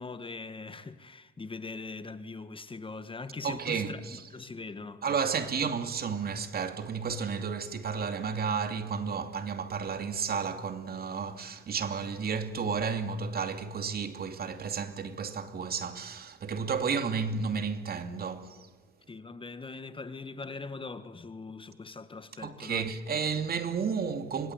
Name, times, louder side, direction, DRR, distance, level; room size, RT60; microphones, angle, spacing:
voice 1, 0.0-5.0 19.1-22.9, left 3 dB, 25° left, 1.7 m, -41 dB
voice 2, 3.4-4.2 5.0-18.6 22.4-24.5, right 6 dB, 50° right, 2.7 m, -32 dB
25.5 x 25.5 x 8.1 m
cardioid pair, 90°, 20 cm